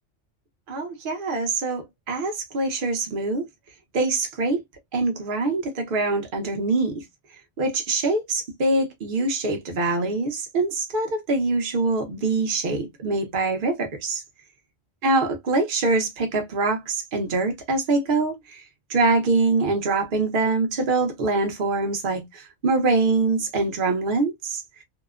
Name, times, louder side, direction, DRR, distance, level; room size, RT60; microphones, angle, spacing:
voice 1, 0.7-3.4 3.9-4.6 4.9-7.0 7.6-14.2 15.0-18.6 18.9-24.6, right 3 dB, 50° right, 0.9 m, -24 dB
2.8 x 2.1 x 2.3 m
omnidirectional pair, 1.2 m